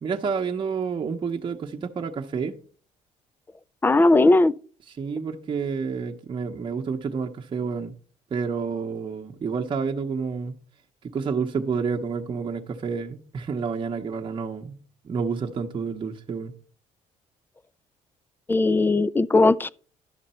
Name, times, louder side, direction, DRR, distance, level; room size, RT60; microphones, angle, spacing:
voice 1, 0.0-2.6 5.0-7.9 8.3-10.6 11.0-14.8 15.0-16.5, right 5 dB, 35° right, 0.9 m, -29 dB
voice 2, 3.8-4.5 18.5-19.7, left 2 dB, 15° left, 0.4 m, -18 dB
11.0 x 6.6 x 4.3 m
cardioid pair, 100°, 14 cm